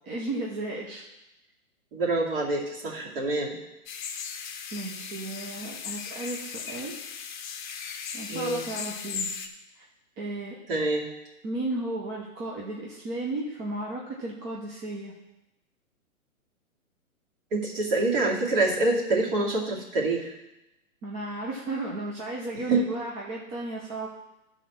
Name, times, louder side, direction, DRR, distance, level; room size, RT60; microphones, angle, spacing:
voice 1, 0.0-1.0 4.7-7.0 8.1-9.3 9.8-9.9 10.2-10.6 11.4-15.2 21.0-24.1, right 2 dB, 15° right, -3 dB, 0.8 m, -34 dB
voice 2, 1.9-3.6 8.3-8.6 10.7-11.1 17.5-20.3 22.5-22.8, right 2 dB, 40° right, -3 dB, 2.4 m, -26 dB
sound 1, 3.9-9.5, left 6 dB, 35° left, 0.9 m, -37 dB
12.5 x 4.2 x 5.9 m, 0.95 s
hypercardioid pair, 140°, 42 cm